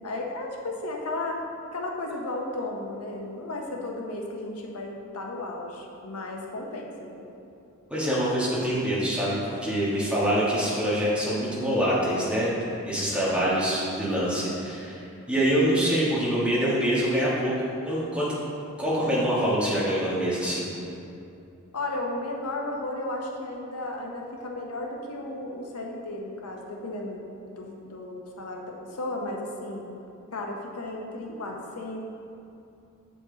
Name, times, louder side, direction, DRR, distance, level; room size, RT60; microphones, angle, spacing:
voice 1, 0.0-1.4 1.7-7.3 21.7-30.0 30.3-32.0, left 2 dB, 90° left, 0 dB, 0.8 m, -34 dB
voice 2, 7.9-12.5 12.9-15.0 15.3-17.5 17.8-18.3 18.8-20.7, equal, 5° right, -9 dB, 1.4 m, -25 dB
7.7 x 5.1 x 3.9 m, 2.7 s
head